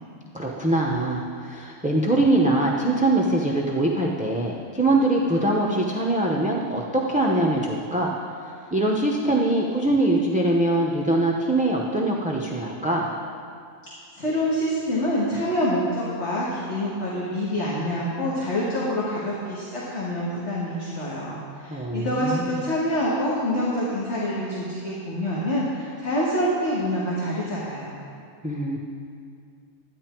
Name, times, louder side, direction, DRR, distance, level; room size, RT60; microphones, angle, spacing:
voice 1, 0.3-8.1 8.4-13.2 21.7-22.6 28.4-28.8, right 1 dB, 10° right, -2 dB, 0.6 m, -23 dB
voice 2, 14.1-28.0, equal, 50° left, -7 dB, 2.0 m, -26 dB
13.0 x 10.5 x 4.5 m, 2.4 s
omnidirectional pair, 1.5 m